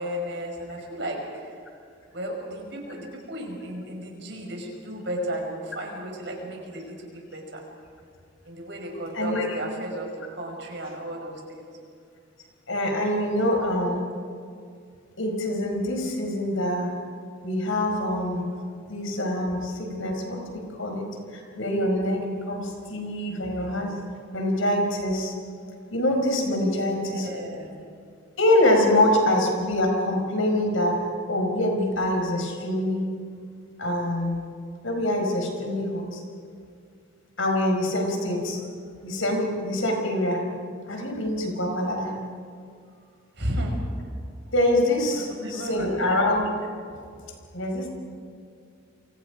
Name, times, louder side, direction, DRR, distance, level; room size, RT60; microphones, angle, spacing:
voice 1, 0.0-1.6 2.1-7.6 8.4-11.6 26.6-26.8 27.1-27.7 43.4-43.8 45.1-46.1, equal, 55° right, 1 dB, 5.7 m, -34 dB
voice 2, 9.1-9.5 12.7-14.0 15.2-17.0 17.4-18.5 18.9-24.0 24.3-25.3 25.9-27.3 28.4-31.0 31.3-33.1 33.8-34.4 34.8-36.2 37.4-38.6 39.0-40.4 40.9-42.1 44.5-46.5 46.9-47.0 47.5-47.9, left 1 dB, 80° left, 2 dB, 5.1 m, -25 dB
29.5 x 24.5 x 5.1 m, 2.3 s
head